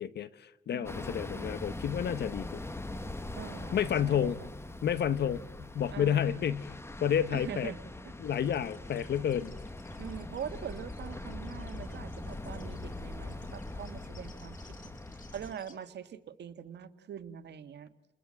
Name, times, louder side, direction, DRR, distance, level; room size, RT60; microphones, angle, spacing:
voice 1, 0.0-2.6 3.7-4.4 4.8-7.7 8.2-9.5, left 9 dB, 60° left, 0.9 m, -30 dB
voice 2, 0.7-1.5 3.3-4.5 5.9-6.5 7.3-7.8 8.0-8.1 10.0-14.7 15.3-17.9, right 8 dB, 60° right, 1.6 m, -43 dB
sound 1, 0.8-15.5, left 2 dB, 10° left, 1.4 m, -42 dB
sound 2, 8.2-15.7, left 4 dB, 40° left, 4.6 m, -60 dB
30.0 x 20.5 x 7.6 m
cardioid pair, 90°, 20 cm